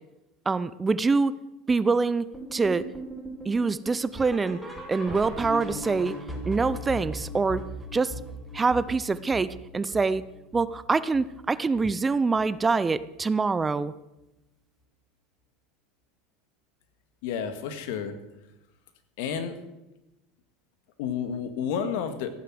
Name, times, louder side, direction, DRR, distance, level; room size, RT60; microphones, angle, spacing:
voice 1, 0.5-1.3 1.7-2.9 3.4-4.6 4.9-6.2 6.5-7.7 7.9-8.1 8.5-10.2 10.5-13.9, right 4 dB, 20° right, 16 dB, 0.6 m, -25 dB
sound 1, 2.3-11.5 11.7-12.1 12.4-12.5 13.0-13.1 13.6-13.7, equal, 5° left, 5.8 m, -39 dB
voice 2, 17.2-18.2 19.2-19.6 21.0-22.3, left 7 dB, 70° left, 9 dB, 1.9 m, -30 dB
14.5 x 9.4 x 7.9 m, 0.96 s
hypercardioid pair, 90°, 0 cm